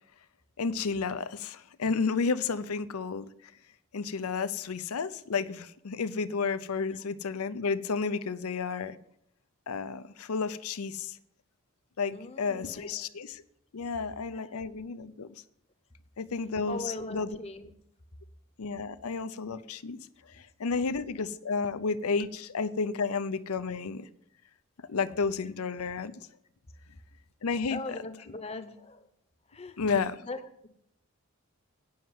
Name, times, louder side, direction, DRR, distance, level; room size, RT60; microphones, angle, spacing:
voice 1, 0.6-3.3 3.9-9.0 9.7-11.2 12.0-13.4 13.7-15.4 16.2-17.4 18.6-20.0 20.3-24.0 24.9-26.3 27.4-27.8 29.8-30.2, left 5 dB, 85° left, 0.6 m, -32 dB
voice 2, 12.1-13.0 14.3-14.5 16.7-17.7 27.7-29.0 29.5-29.8 30.3-30.7, left 2 dB, 30° left, 0.8 m, -40 dB
9.4 x 6.5 x 7.9 m
head